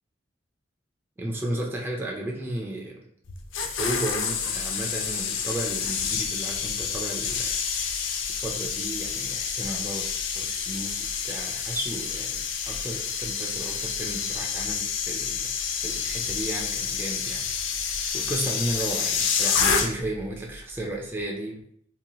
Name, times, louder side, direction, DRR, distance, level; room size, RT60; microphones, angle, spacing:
voice 1, 1.2-3.0 3.6-10.1 10.3-15.5 15.8-21.9, right 1 dB, 10° right, -1 dB, 0.4 m, -34 dB
sound 1, 3.3-20.2 20.5-20.8, left 6 dB, 75° left, 0.4 m, -28 dB
2.9 x 2.7 x 2.3 m, 0.66 s
head